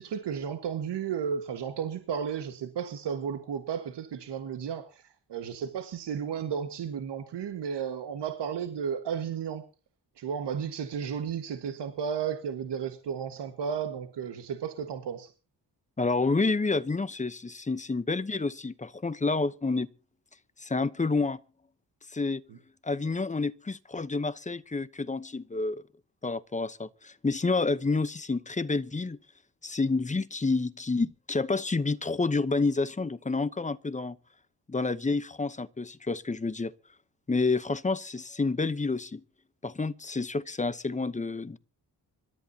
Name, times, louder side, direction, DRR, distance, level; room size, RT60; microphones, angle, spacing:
voice 1, 0.0-5.0 5.3-9.7 10.2-15.3, right 7 dB, 90° right, 1.7 m, -33 dB
voice 2, 16.0-19.9 20.6-21.4 22.1-22.4 22.8-25.8 26.2-29.2 29.6-34.2 34.7-36.7 37.3-39.2 39.6-41.6, left 3 dB, 20° left, 0.8 m, -29 dB
26.0 x 13.0 x 2.8 m
wide cardioid pair, 110°, 40 cm